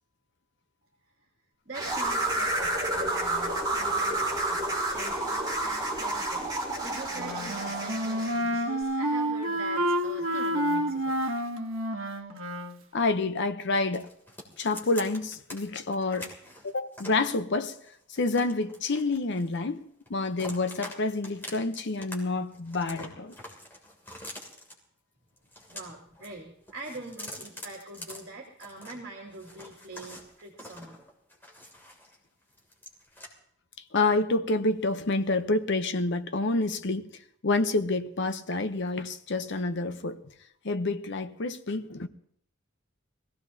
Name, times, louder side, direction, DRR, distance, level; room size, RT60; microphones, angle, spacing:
sound 1, 1.7-8.4, right 2 dB, 20° right, 3.6 m, -30 dB
voice 1, 1.7-11.2 25.7-31.0, right 2 dB, 55° right, 2.3 m, -44 dB
Wind instrument woodwind instrument, 7.1-12.8, equal, 75° right, 1.3 m, -29 dB
voice 2, 12.9-14.1 14.6-16.3 16.6-17.8 18.1-23.3 33.9-37.1 37.4-40.2 40.6-42.1, left 3 dB, 60° left, 0.8 m, -28 dB
sound 2, 13.9-15.6 15.9-17.2 17.7-19.8 20.1-21.0 21.2-22.1 22.4-24.7 25.4-26.3 26.6-29.0 29.3-32.2 32.5-33.3, left 1 dB, 10° left, 2.8 m, -45 dB
23.0 x 15.5 x 2.8 m
head